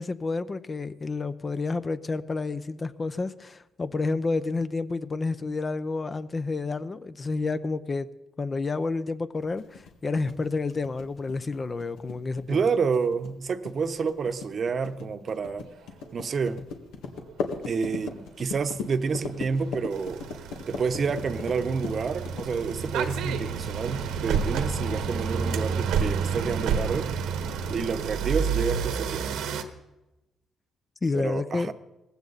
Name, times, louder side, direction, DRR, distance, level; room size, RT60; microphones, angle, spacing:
voice 1, 0.0-8.1 8.4-12.6 31.0-31.7, left 3 dB, 30° left, 13 dB, 0.7 m, -30 dB
sound 1, 9.6-23.3, left 5 dB, 85° left, 1.8 m, -38 dB
voice 2, 12.5-15.7 16.1-16.6 17.7-20.2 20.7-27.1 27.7-29.3 31.1-31.7, right 5 dB, 50° right, 10 dB, 0.9 m, -29 dB
sound 2, 17.9-18.2 18.8-29.6, right 6 dB, 90° right, 1.3 m, -30 dB
18.5 x 15.5 x 4.1 m, 0.98 s
cardioid pair, 90°, 0 cm